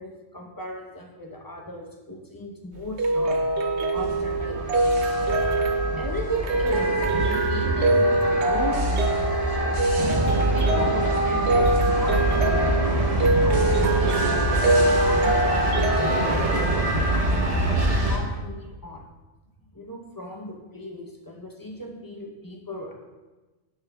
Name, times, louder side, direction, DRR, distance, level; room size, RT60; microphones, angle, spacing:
voice 1, 0.0-3.4 3.9-4.6 6.0-10.0 10.5-12.6 13.4-17.2 17.9-19.0 19.7-22.9, equal, 20° left, 0 dB, 0.6 m, -37 dB
sound 1, 2.7-16.3, right 2 dB, 70° right, 0.9 m, -24 dB
sound 2, 4.0-18.2, right 1 dB, 35° right, 0.9 m, -25 dB
10.0 x 5.8 x 2.3 m, 1.2 s
omnidirectional pair, 1.2 m